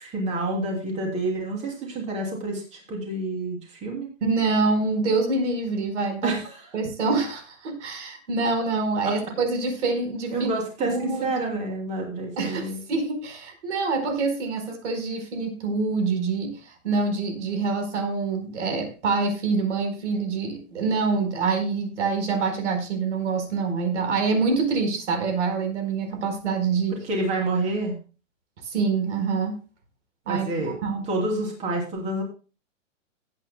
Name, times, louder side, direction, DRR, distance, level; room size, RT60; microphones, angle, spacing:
voice 1, 0.0-4.1 6.2-6.7 9.0-9.1 10.3-12.8 26.9-28.0 30.3-30.7 31.1-32.2, right 2 dB, 15° right, 0 dB, 3.0 m, -28 dB
voice 2, 4.2-6.3 6.7-10.5 10.8-11.5 12.4-27.0 28.6-29.5 30.3-30.5 30.8-31.0, right 4 dB, 60° right, 6 dB, 4.5 m, -26 dB
19.0 x 9.2 x 2.2 m, 0.34 s
hypercardioid pair, 165°, 39 cm